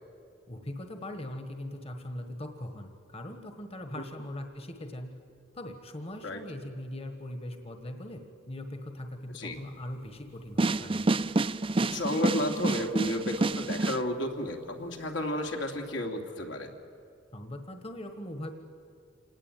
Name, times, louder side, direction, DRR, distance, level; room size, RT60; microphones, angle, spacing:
voice 1, 0.5-5.2 5.5-11.0 17.3-18.5, left 1 dB, 35° left, 6 dB, 1.4 m, -40 dB
sound 1, 10.6-14.0, right 2 dB, 30° right, 0.5 m, -28 dB
voice 2, 11.9-16.7, left 1 dB, 80° left, 2 dB, 2.7 m, -32 dB
26.5 x 19.0 x 9.1 m, 2.4 s
head